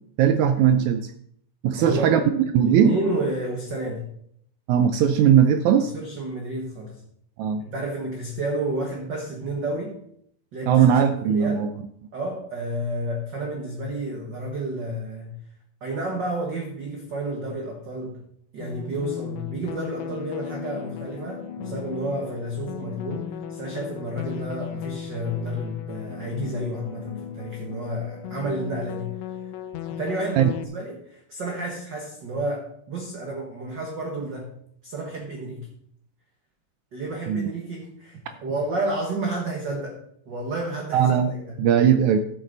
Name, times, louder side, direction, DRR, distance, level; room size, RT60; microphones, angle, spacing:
voice 1, 0.2-1.1 1.6-3.0 4.7-5.9 7.4-7.6 10.7-11.7 30.4-30.5 37.3-37.5 40.9-42.2, right 8 dB, 80° right, 8 dB, 1.7 m, -19 dB
voice 2, 1.7-2.3 2.6-4.0 5.7-7.0 7.6-10.0 10.5-11.7 12.1-15.3 15.8-18.2 18.5-23.2 23.5-29.2 29.9-34.5 34.8-35.7 36.9-41.6, right 1 dB, 45° right, 0 dB, 1.6 m, -31 dB
sound 1, 18.6-30.6, left 9 dB, 90° left, 1.4 m, -36 dB
13.5 x 7.9 x 4.0 m, 0.67 s
omnidirectional pair, 3.9 m